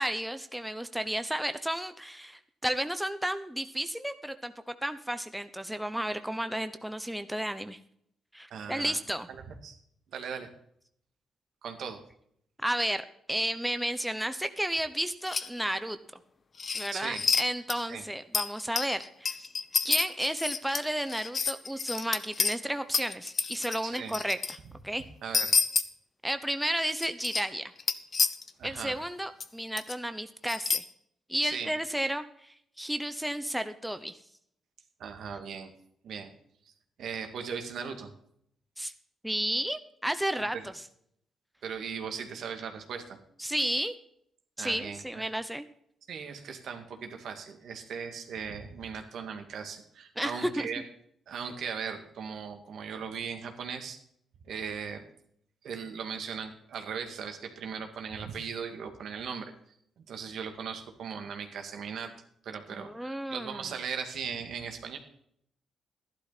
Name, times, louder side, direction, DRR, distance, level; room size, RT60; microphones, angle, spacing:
voice 1, 0.0-7.8 8.3-9.3 12.6-13.0 13.3-16.0 16.7-19.5 19.8-24.6 24.8-25.0 26.2-27.7 28.6-30.8 31.3-34.2 38.8-38.9 39.2-40.8 43.4-43.9 44.6-45.6 50.2-50.7 62.7-63.6, right 1 dB, 5° right, 10 dB, 0.9 m, -32 dB
voice 2, 8.5-9.0 9.3-9.8 10.1-10.5 11.6-12.0 16.9-17.2 17.9-18.0 23.8-24.2 25.2-25.7 28.6-29.0 31.4-31.7 35.0-35.7 36.0-36.3 37.0-38.1 40.5-40.7 41.6-43.2 44.6-45.2 46.1-50.8 51.3-54.0 54.5-55.0 55.6-59.5 60.1-62.1 62.4-65.0, right 6 dB, 70° right, 5 dB, 2.1 m, -38 dB
sound 1, 15.3-15.5 16.6-17.4 17.7-17.8 18.3-22.6 22.9-24.6 25.3-25.8 26.9-27.4 27.8-28.5 29.4-29.5 29.8-29.9 30.5-30.8, left 5 dB, 45° left, 1.0 m, -29 dB
12.0 x 11.5 x 4.2 m, 0.70 s
cardioid pair, 75°, 0 cm